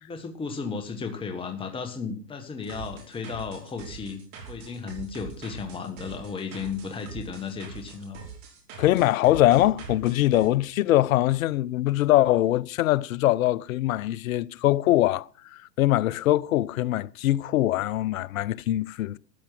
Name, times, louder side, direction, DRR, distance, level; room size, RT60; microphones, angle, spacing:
voice 1, 0.0-4.2 4.5-8.2, left 5 dB, 10° left, 1.6 m, -34 dB
sound 1, 2.6-10.5, right 6 dB, 50° right, 5.4 m, -43 dB
voice 2, 8.8-19.2, left 15 dB, 55° left, 0.7 m, -23 dB
14.0 x 8.7 x 7.7 m
hypercardioid pair, 130°, 50 cm